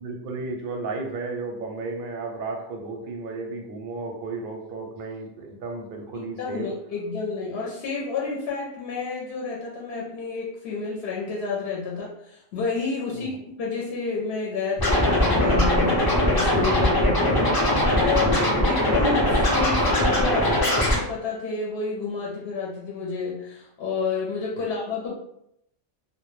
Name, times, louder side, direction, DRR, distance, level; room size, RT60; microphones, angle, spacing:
voice 1, 0.0-6.7 13.1-13.4, right 3 dB, 60° right, 1 dB, 0.6 m, -34 dB
voice 2, 6.4-17.4 18.0-25.1, left 4 dB, 65° left, -3 dB, 0.8 m, -30 dB
Scratching (performance technique), 14.8-21.0, left 1 dB, 35° left, 0.4 m, -21 dB
2.1 x 2.1 x 3.0 m, 0.76 s
omnidirectional pair, 1.2 m